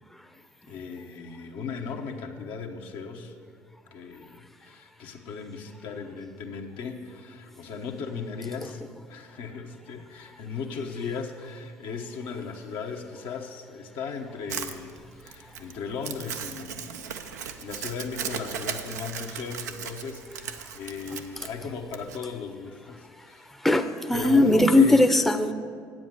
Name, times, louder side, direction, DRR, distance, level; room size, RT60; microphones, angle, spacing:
voice 1, 0.7-3.3 3.9-14.9 15.2-17.0 17.3-23.5 24.1-25.0, left 5 dB, 65° left, 1 dB, 1.1 m, -37 dB
Crumpling crinkling, 14.5-22.2, right 8 dB, 85° right, 0.5 m, -37 dB
voice 2, 23.6-25.5, left 2 dB, 5° left, 7 dB, 0.7 m, -19 dB
8.6 x 7.6 x 7.6 m, 2.1 s
hypercardioid pair, 60°, 9 cm